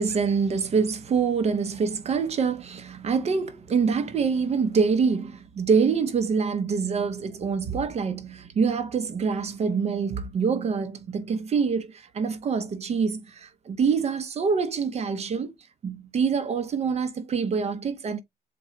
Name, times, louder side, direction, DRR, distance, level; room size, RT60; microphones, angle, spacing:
voice 1, 0.0-15.5 15.8-18.2, right 5 dB, 40° right, 0.6 m, -25 dB
4.2 x 2.2 x 3.6 m
cardioid pair, 110°, 17 cm